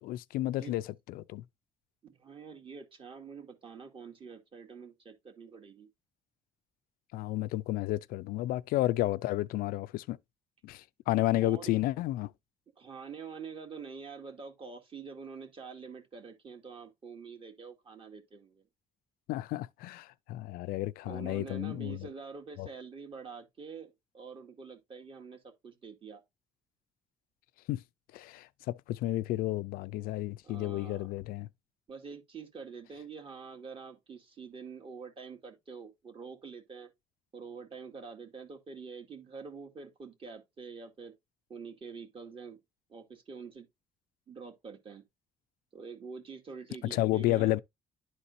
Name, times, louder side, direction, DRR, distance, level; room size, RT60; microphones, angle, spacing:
voice 1, 0.0-1.4 7.1-10.2 10.6-12.3 19.3-22.0 22.6-22.7 27.7-27.8 28.1-31.5 46.9-47.6, left 16 dB, 85° left, 0.4 m, -31 dB
voice 2, 2.0-5.9 11.4-11.7 12.8-18.7 21.0-26.2 30.4-31.1 31.9-36.9 37.3-41.1 41.5-42.6 42.9-43.7 44.3-45.0 45.7-47.6, right 5 dB, 40° right, 2.2 m, -46 dB
11.5 x 4.2 x 2.6 m
cardioid pair, 115°, 15 cm